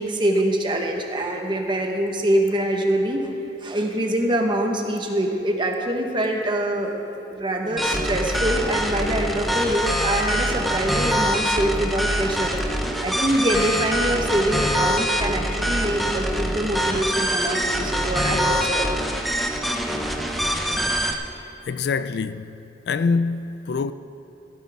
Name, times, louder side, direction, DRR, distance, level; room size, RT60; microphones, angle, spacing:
voice 1, 0.0-3.3 3.6-6.9 7.3-18.9, right 1 dB, 25° right, 1.2 m, -24 dB
sound 1, 7.8-21.1, equal, ahead, 0.7 m, -24 dB
voice 2, 21.7-22.5 22.9-23.9, left 4 dB, 60° left, 0.3 m, -24 dB
15.5 x 13.0 x 3.6 m
head